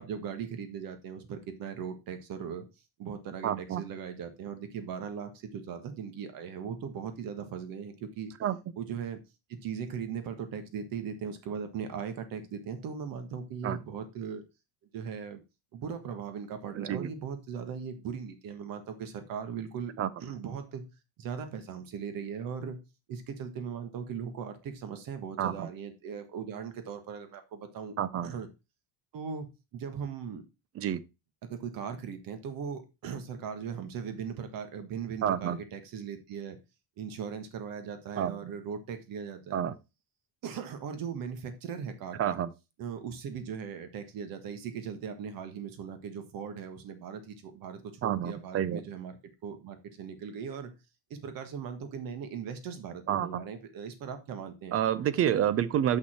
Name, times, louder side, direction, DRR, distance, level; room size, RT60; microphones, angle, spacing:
voice 1, 0.0-2.7 3.0-8.3 8.8-9.2 9.5-14.4 14.9-15.4 15.7-19.9 20.2-20.8 21.2-22.8 23.1-27.9 28.2-28.5 29.1-30.4 31.4-36.6 37.0-39.6 40.4-42.4 42.8-50.7 51.1-54.8, right 7 dB, 50° right, 1.6 m, -39 dB
voice 2, 3.4-3.8 8.4-8.6 13.6-13.8 16.7-17.1 20.0-20.1 25.4-25.7 28.0-28.3 30.8-31.0 35.2-35.6 38.2-38.4 39.5-39.7 42.2-42.5 48.0-48.8 53.1-53.4 54.7-56.0, right 10 dB, 35° right, 0.5 m, -28 dB
6.6 x 5.8 x 4.2 m
cardioid pair, 155°, 42 cm